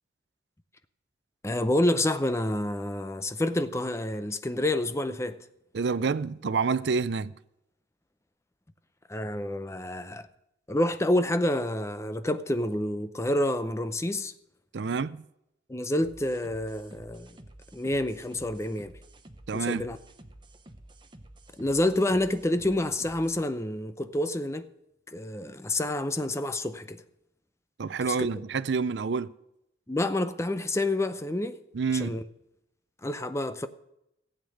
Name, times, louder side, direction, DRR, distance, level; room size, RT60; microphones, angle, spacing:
voice 1, 1.4-5.5 9.1-10.3 10.7-14.3 15.7-17.4 17.7-18.9 19.5-20.0 21.6-24.6 25.1-27.0 28.1-28.3 29.9-31.6 31.9-32.2 33.0-33.7, left 1 dB, 15° left, 0.6 m, -28 dB
voice 2, 5.7-7.3 14.7-15.2 19.5-19.9 27.8-29.3 31.7-32.2, right 5 dB, 70° right, 0.5 m, -28 dB
sound 1, 16.0-23.5, right 1 dB, 25° right, 0.9 m, -51 dB
15.5 x 8.1 x 6.4 m
head